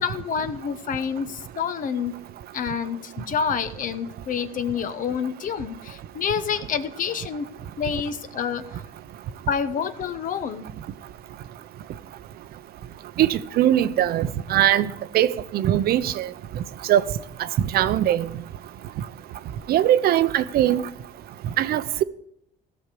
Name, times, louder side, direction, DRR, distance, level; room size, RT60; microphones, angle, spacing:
voice 1, 0.0-2.1 2.5-7.5 7.8-8.6 9.5-10.6, left 7 dB, 50° left, 0.9 m, -28 dB
voice 2, 13.2-14.9 15.1-16.3 16.9-17.0 17.7-18.3 19.7-20.8 21.6-22.0, right 12 dB, 65° right, 0.7 m, -20 dB
17.0 x 6.4 x 4.8 m
cardioid pair, 110°, 17 cm